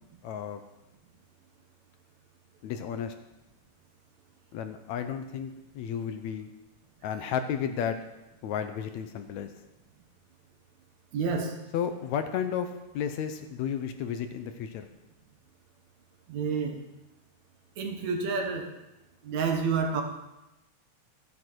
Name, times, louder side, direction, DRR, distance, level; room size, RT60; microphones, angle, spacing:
voice 1, 0.2-0.6 2.6-3.1 4.5-6.5 7.0-8.0 8.4-9.5 11.7-14.9, left 8 dB, 75° left, 8 dB, 1.9 m, -33 dB
voice 2, 11.1-11.6 16.3-16.8 17.8-18.7 19.2-20.0, right 5 dB, 65° right, 3 dB, 2.6 m, -29 dB
14.0 x 9.6 x 4.6 m, 0.96 s
omnidirectional pair, 3.5 m